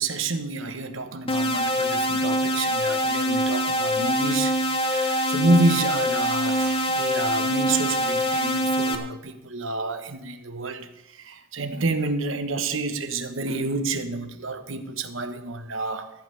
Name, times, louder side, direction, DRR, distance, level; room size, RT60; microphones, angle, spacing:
voice 1, 0.0-4.5 4.8-10.9 11.2-16.1, right 2 dB, 80° right, 8 dB, 1.2 m, -28 dB
sound 1, 1.3-9.0, equal, 30° left, 1.2 m, -24 dB
14.5 x 5.6 x 9.1 m, 0.87 s
head